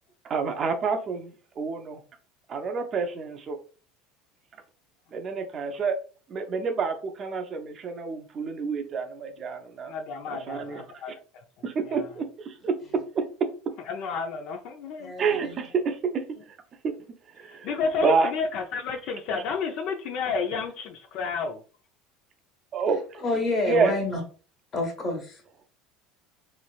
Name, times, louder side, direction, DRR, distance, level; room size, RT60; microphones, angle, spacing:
voice 1, 0.2-2.0 2.5-3.6 5.1-6.0 6.3-9.9 10.3-10.8 11.6-13.7 15.2-16.6 16.8-17.0 17.3-17.7 18.0-18.3 22.7-23.2 23.7-23.9, right 5 dB, 35° right, 6 dB, 0.5 m, -28 dB
voice 2, 9.9-11.4 11.9-12.1 13.9-15.1 17.5-21.6, left 5 dB, 60° left, 5 dB, 0.5 m, -31 dB
voice 3, 15.0-15.7 23.2-24.2 24.7-25.4, left 2 dB, 35° left, 2 dB, 1.4 m, -28 dB
3.2 x 3.0 x 2.4 m, 0.38 s
supercardioid pair, 120°, 0 cm